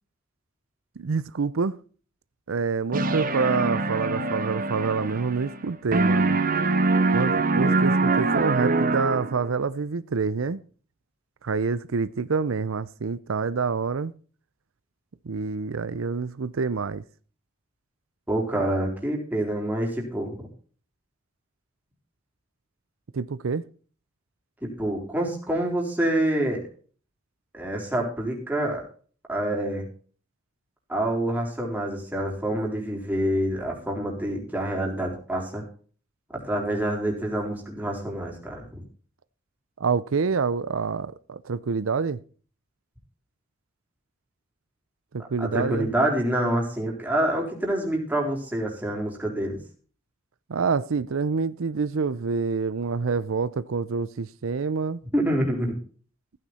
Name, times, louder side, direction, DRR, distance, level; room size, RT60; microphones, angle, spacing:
voice 1, 1.0-1.8 2.5-6.4 7.1-10.6 11.4-14.1 15.3-17.0 23.1-23.6 39.8-42.2 45.1-45.9 50.5-55.0, right 5 dB, 85° right, 0.6 m, -27 dB
sound 1, 2.9-5.7 5.9-9.5, right 3 dB, 45° right, 1.4 m, -24 dB
voice 2, 18.3-20.4 24.6-26.6 27.5-28.8 29.3-29.9 30.9-35.6 36.3-38.8 45.4-49.6 55.1-55.8, right 1 dB, 10° right, 4.2 m, -27 dB
15.5 x 9.3 x 4.3 m
head